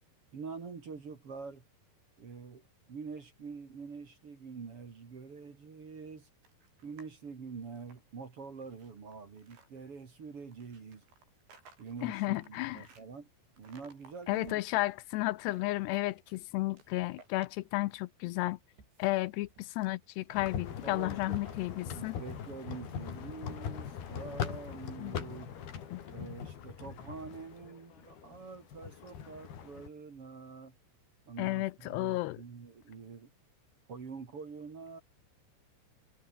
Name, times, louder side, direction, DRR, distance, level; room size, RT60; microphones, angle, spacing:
voice 1, 0.3-1.6 2.2-6.3 6.8-11.0 11.8-13.3 13.6-14.6 20.8-25.5 26.1-30.7 31.3-33.3 33.9-35.0, right 5 dB, 40° right, 2.9 m, -46 dB
sound 1, 6.4-7.2 7.6-9.7 10.5-13.0 13.6-14.9 15.3-16.4 16.7-18.0 18.3-22.3, right 5 dB, 85° right, 9.4 m, -60 dB
voice 2, 12.0-12.9 14.3-18.6 19.0-22.2 25.0-25.2 25.9-26.0 31.4-32.4, left 19 dB, 85° left, 2.7 m, -33 dB
sound 2, 20.3-29.9, left 8 dB, 65° left, 4.8 m, -41 dB
omnidirectional pair, 5.0 m